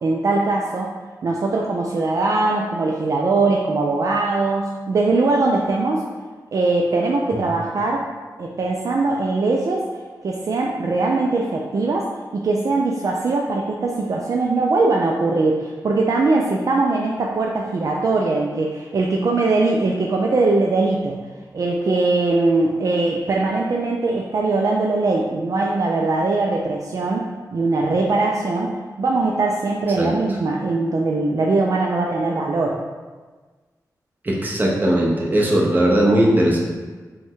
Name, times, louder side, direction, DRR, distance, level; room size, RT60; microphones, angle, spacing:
voice 1, 0.0-0.9 1.2-6.1 6.5-8.0 8.4-9.8 10.2-12.1 12.3-21.2 21.5-32.8, right 3 dB, 55° right, -1 dB, 0.4 m, -21 dB
voice 2, 34.2-36.6, right 1 dB, 25° right, -3 dB, 0.8 m, -18 dB
5.2 x 2.2 x 3.6 m, 1.4 s
wide cardioid pair, 125°, 7 cm